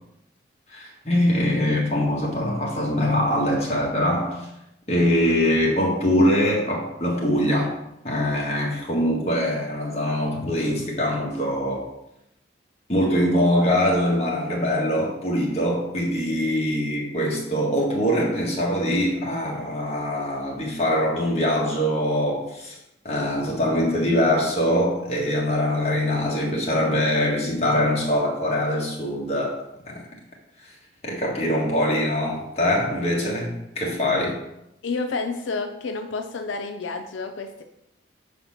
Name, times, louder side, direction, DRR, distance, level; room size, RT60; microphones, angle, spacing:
voice 1, 0.7-4.5 4.9-7.8 8.0-11.9 12.9-22.8 23.0-29.6 29.9-30.0 31.0-34.4, left 1 dB, 35° left, -3 dB, 1.5 m, -23 dB
voice 2, 34.8-37.6, left 4 dB, 85° left, 6 dB, 0.5 m, -30 dB
5.1 x 4.2 x 5.7 m, 0.84 s
head